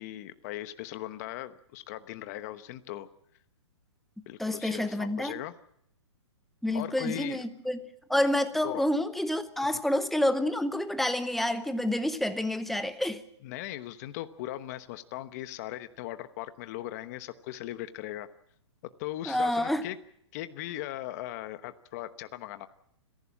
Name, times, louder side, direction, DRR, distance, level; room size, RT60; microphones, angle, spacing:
voice 1, 0.0-3.1 4.3-5.5 6.7-7.4 8.6-8.8 13.4-18.3 19.0-20.0 20.3-22.7, left 14 dB, 35° left, 1.0 m, -39 dB
voice 2, 4.4-5.3 6.6-7.8 8.1-13.2 19.3-19.9, left 1 dB, ahead, 0.8 m, -28 dB
29.5 x 11.5 x 8.7 m
hypercardioid pair, 155°, 15 cm